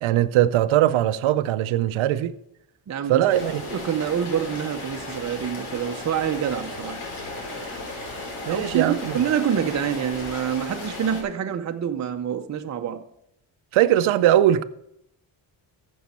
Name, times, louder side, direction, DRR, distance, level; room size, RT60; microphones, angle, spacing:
voice 1, 0.0-2.3 3.1-3.6 8.5-9.2 13.7-14.6, right 12 dB, 80° right, 0.6 m, -20 dB
voice 2, 2.9-7.0 8.5-13.0, right 8 dB, 35° right, 0.7 m, -27 dB
Rain, 3.3-11.2, left 2 dB, 85° left, 3.4 m, -35 dB
14.0 x 6.5 x 4.3 m
cardioid pair, 115°, 47 cm